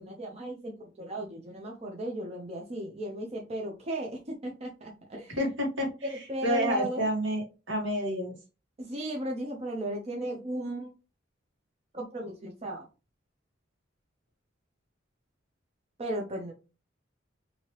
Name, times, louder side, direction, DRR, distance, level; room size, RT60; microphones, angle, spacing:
voice 1, 0.0-5.4 6.3-7.0 8.9-10.9 11.9-12.9 16.0-16.5, right 1 dB, 35° right, 1 dB, 0.6 m, -35 dB
voice 2, 5.3-8.3, equal, 70° right, 0 dB, 1.5 m, -30 dB
3.1 x 2.8 x 2.9 m, 0.32 s
head